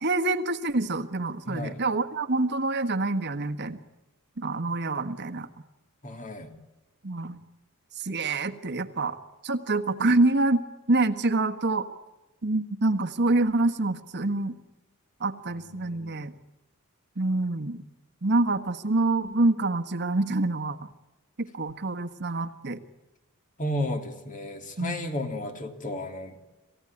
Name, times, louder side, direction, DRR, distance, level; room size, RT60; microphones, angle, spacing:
voice 1, 0.0-3.8 4.4-5.5 7.0-7.4 8.0-9.2 9.4-10.6 10.9-11.8 12.4-14.5 15.2-16.3 17.2-17.8 18.2-20.8 21.4-22.8 24.8-24.9, right 2 dB, 50° right, 8 dB, 1.4 m, -26 dB
voice 2, 1.4-1.8 6.0-6.5 15.5-16.3 23.6-26.4, left 1 dB, 40° left, 5 dB, 3.0 m, -33 dB
27.5 x 16.0 x 10.0 m, 1.1 s
head